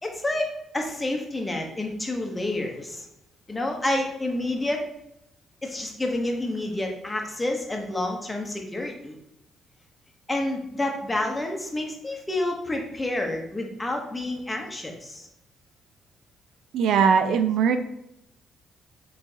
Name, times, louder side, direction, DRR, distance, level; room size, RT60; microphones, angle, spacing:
voice 1, 0.0-3.1 3.5-4.8 5.6-9.2 10.3-15.3, left 1 dB, 15° left, 2 dB, 0.9 m, -29 dB
voice 2, 16.7-17.8, right 6 dB, 75° right, 8 dB, 0.3 m, -20 dB
4.3 x 3.2 x 2.7 m, 0.81 s
cardioid pair, 90°, 0 cm